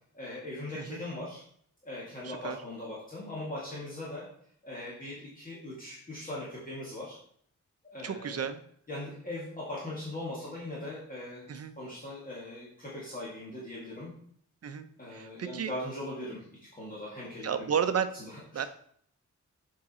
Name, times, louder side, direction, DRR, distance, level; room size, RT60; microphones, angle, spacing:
voice 1, 0.1-1.4 1.8-4.3 4.6-7.2 7.9-8.5 8.9-14.1 15.0-17.7 18.2-18.4, left 1 dB, 25° left, -6 dB, 1.9 m, -40 dB
voice 2, 2.2-2.6 8.0-8.6 11.5-11.7 14.6-15.7 17.4-18.1 18.5-18.7, right 7 dB, 50° right, 10 dB, 0.6 m, -32 dB
7.5 x 4.8 x 4.3 m, 0.63 s
wide cardioid pair, 175°, 31 cm